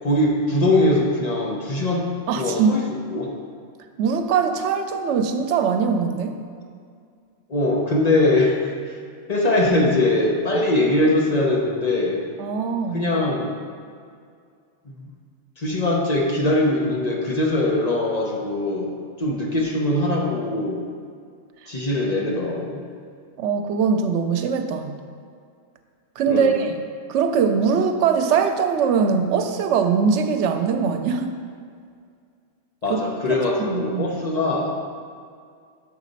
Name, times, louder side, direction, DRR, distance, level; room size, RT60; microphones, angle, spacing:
voice 1, 0.0-2.1 2.4-2.8 3.1-3.3 7.5-9.0 9.3-12.2 12.9-13.6 14.8-15.1 15.6-18.9 19.2-20.8 21.7-22.8 26.3-26.6 32.8-34.8, left 2 dB, 40° left, -2 dB, 0.8 m, -21 dB
voice 2, 2.3-2.8 4.0-6.4 12.4-13.0 23.4-25.0 26.2-26.7 27.1-31.3 32.9-33.0 33.7-34.1, right 6 dB, 85° right, 7 dB, 0.9 m, -21 dB
6.6 x 4.1 x 5.2 m, 2.2 s
omnidirectional pair, 1.2 m